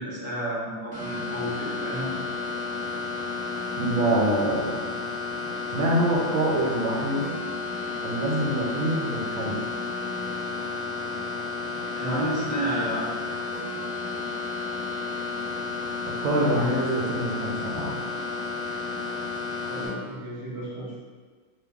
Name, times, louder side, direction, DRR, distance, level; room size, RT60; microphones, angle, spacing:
voice 1, 0.0-2.2 12.0-13.3 19.7-21.0, right 1 dB, 35° left, -11 dB, 0.5 m, -31 dB
sound 1, 0.9-19.9, left 3 dB, 5° right, 0.7 m, -32 dB
voice 2, 3.8-4.7 5.7-7.3 8.0-9.6 16.2-18.0, right 1 dB, 85° right, -2 dB, 1.4 m, -25 dB
2.9 x 2.5 x 3.3 m, 1.5 s
omnidirectional pair, 2.2 m